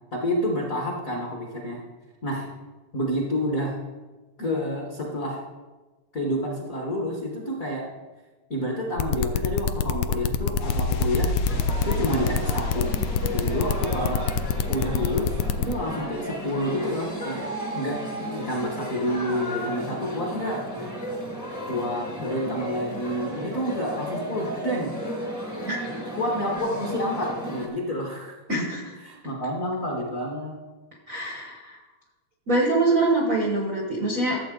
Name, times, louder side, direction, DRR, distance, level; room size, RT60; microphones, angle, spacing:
voice 1, 0.1-1.8 2.2-2.5 2.9-3.8 4.4-5.4 6.1-7.8 8.5-11.3 11.8-12.9 13.3-14.2 14.7-17.5 17.7-20.6 21.7-24.9 26.2-28.7 29.0-30.6, equal, 50° left, -1 dB, 0.9 m, -29 dB
sound 1, 9.0-15.7, left 8 dB, 90° left, 1.4 m, -25 dB
sound 2, 10.6-17.1 17.4-17.5, equal, 70° left, 1.2 m, -34 dB
sound 3, 11.4-27.7, equal, 20° left, 0.4 m, -34 dB
voice 2, 25.7-26.0 28.5-28.8 31.1-31.8 32.5-34.4, right 2 dB, 75° right, 0 dB, 0.7 m, -24 dB
13.5 x 7.3 x 3.8 m, 1.2 s
omnidirectional pair, 3.5 m